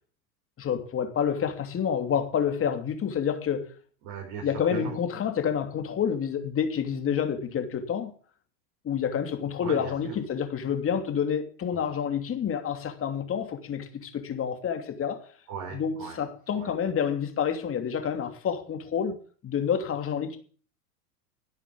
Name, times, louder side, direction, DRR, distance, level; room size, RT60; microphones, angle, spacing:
voice 1, 0.6-3.7 4.4-8.1 8.8-15.2 15.7-19.1 19.4-20.4, left 8 dB, 25° left, 2.9 m, -28 dB
voice 2, 4.0-5.0 9.6-10.1 11.7-11.8 15.5-16.2 16.5-16.7, right 7 dB, 45° right, 5.0 m, -38 dB
12.0 x 8.1 x 8.6 m
hypercardioid pair, 110°, 47 cm